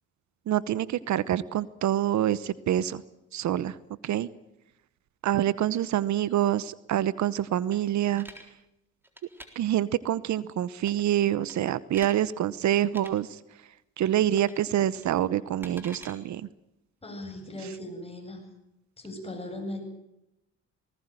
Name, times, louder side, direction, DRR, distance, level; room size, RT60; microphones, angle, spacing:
voice 1, 0.5-3.0 3.3-3.8 4.0-4.3 5.2-8.3 9.6-13.4 14.0-16.5, right 11 dB, 70° right, 18 dB, 0.9 m, -26 dB
sound 1, 7.7-8.5 9.0-9.5 10.8-11.2 11.5-12.2 12.8-13.1 14.3-14.6 14.9-16.1, equal, 5° right, 3.9 m, -47 dB
voice 2, 17.0-18.4 19.0-19.8, left 1 dB, 20° left, 3 dB, 7.9 m, -38 dB
19.5 x 19.5 x 9.1 m, 0.88 s
cardioid pair, 90°, 30 cm